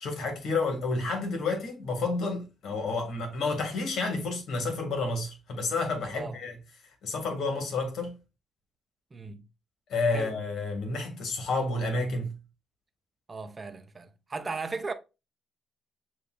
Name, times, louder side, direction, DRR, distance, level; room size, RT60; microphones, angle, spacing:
voice 1, 0.0-6.5 7.0-8.2 9.9-12.3, left 3 dB, 70° left, 1.7 m, -30 dB
voice 2, 9.1-9.5 10.1-10.4 13.3-14.9, right 4 dB, 30° right, 0.7 m, -37 dB
6.7 x 2.7 x 2.4 m
cardioid pair, 95°, 0 cm